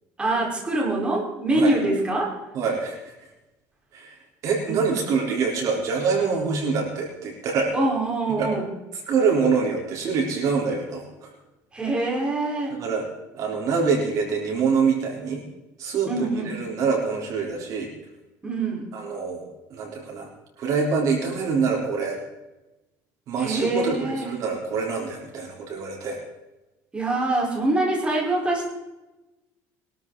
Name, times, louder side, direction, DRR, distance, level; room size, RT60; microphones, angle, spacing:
voice 1, 0.2-2.3 4.7-5.0 7.7-8.7 11.7-12.8 16.1-16.5 18.4-18.9 23.4-24.3 26.9-28.7, right 2 dB, 15° right, -3 dB, 4.5 m, -24 dB
voice 2, 2.5-3.1 3.9-7.7 8.4-8.5 9.1-11.3 12.7-13.0 13.3-15.4 15.8-17.9 18.9-20.3 20.6-22.2 23.3-26.2, right 5 dB, 50° right, 0 dB, 3.8 m, -25 dB
22.0 x 13.0 x 4.0 m, 1.0 s
cardioid pair, 145°, 7 cm